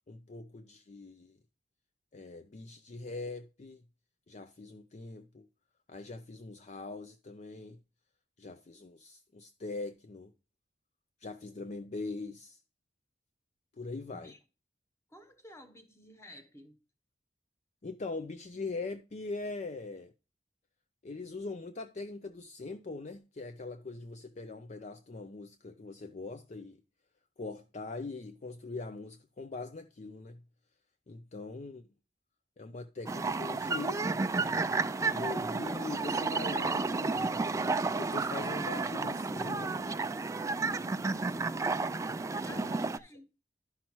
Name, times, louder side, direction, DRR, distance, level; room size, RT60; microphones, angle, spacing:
voice 1, 0.1-1.4 2.1-3.8 4.3-5.5 5.9-7.8 8.4-10.3 11.2-12.6 13.8-14.3 17.8-20.1 21.0-26.8 27.4-30.4 31.1-31.9 32.6-34.1 35.1-37.4 38.0-40.0 41.1-41.5 42.5-42.9, left 3 dB, 40° left, 0.5 m, -42 dB
voice 2, 15.1-16.8 42.4-43.3, left 1 dB, 15° left, 1.0 m, -53 dB
sound 1, 33.1-43.0, right 3 dB, 20° right, 0.3 m, -32 dB
11.5 x 5.7 x 3.0 m
head